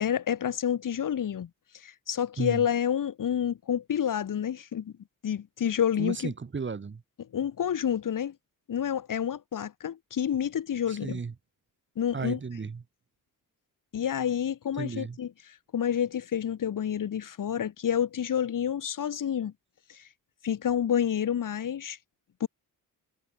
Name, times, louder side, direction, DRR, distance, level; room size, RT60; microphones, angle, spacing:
voice 1, 0.0-1.5 1.7-4.9 5.2-6.3 7.2-8.4 8.7-11.2 12.0-12.4 13.9-19.5 19.9-20.0 20.4-22.0 22.4-22.5, left 9 dB, 65° left, 2.0 m, -29 dB
voice 2, 6.0-7.0 10.9-11.3 12.1-12.8 14.8-15.2, right 5 dB, 35° right, 1.8 m, -34 dB
cardioid pair, 105°, 35 cm